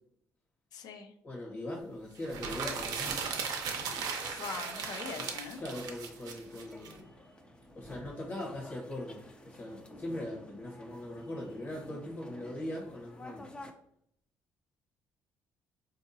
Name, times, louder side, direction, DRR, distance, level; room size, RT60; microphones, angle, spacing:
voice 1, 0.7-1.1 4.2-5.6, left 6 dB, 70° left, 7 dB, 0.5 m, -42 dB
voice 2, 1.2-3.2 5.2-5.3 5.6-7.1 7.7-13.5, left 1 dB, 45° left, -2 dB, 1.1 m, -40 dB
sound 1, 2.2-6.9, right 5 dB, 70° right, 0.6 m, -37 dB
sound 2, 2.4-13.7, left 1 dB, 15° left, 0.5 m, -51 dB
3.6 x 2.7 x 2.6 m, 0.71 s
supercardioid pair, 75°, 7 cm